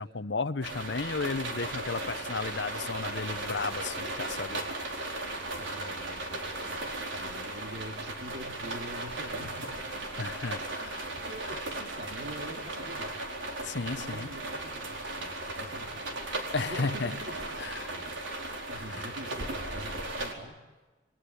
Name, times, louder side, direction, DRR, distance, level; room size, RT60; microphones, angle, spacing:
voice 1, 0.0-4.7 10.2-11.1 13.6-14.3 16.5-17.2 17.6-17.9 18.9-19.1, left 4 dB, 65° left, 14 dB, 0.8 m, -34 dB
sound 1, 0.6-20.3, right 2 dB, 90° right, 4.5 m, -36 dB
voice 2, 5.4-9.7 9.9-10.3 10.7-13.3 13.9-16.4 16.7-18.1 18.7-20.5, right 1 dB, 60° right, 4 dB, 3.3 m, -45 dB
29.0 x 23.0 x 8.5 m, 1.2 s
head